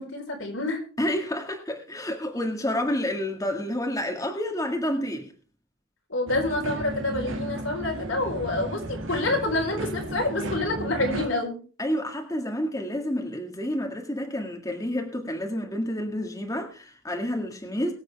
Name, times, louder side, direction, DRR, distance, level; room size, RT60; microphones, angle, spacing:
voice 1, 0.0-0.8 6.1-11.6, left 2 dB, 75° left, 4.2 m, -27 dB
voice 2, 1.0-5.3 11.8-17.9, left 1 dB, 15° left, 1.9 m, -29 dB
sound 1, 6.3-11.3, right 2 dB, 80° right, 2.1 m, -34 dB
23.0 x 8.0 x 3.4 m
head